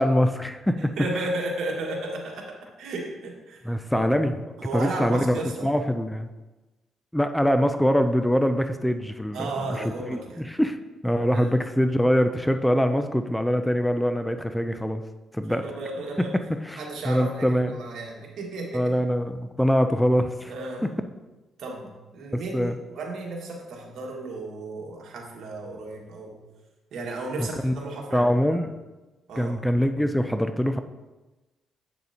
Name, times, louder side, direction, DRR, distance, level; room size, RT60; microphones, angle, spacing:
voice 1, 0.0-0.9 3.6-4.3 4.7-6.3 7.1-10.8 11.0-15.0 15.3-15.6 16.2-17.8 18.7-20.5 22.5-22.7 27.4-27.7 28.1-28.7 29.4-30.8, equal, 5° left, 8 dB, 0.4 m, -24 dB
voice 2, 0.8-4.0 4.6-5.7 9.3-10.4 11.3-11.6 15.5-16.3 16.8-19.0 20.5-20.9 21.6-26.4 26.9-28.6 29.3-29.6, right 2 dB, 75° right, -1 dB, 1.7 m, -34 dB
8.0 x 6.7 x 2.8 m, 1.1 s
cardioid pair, 90°, 0 cm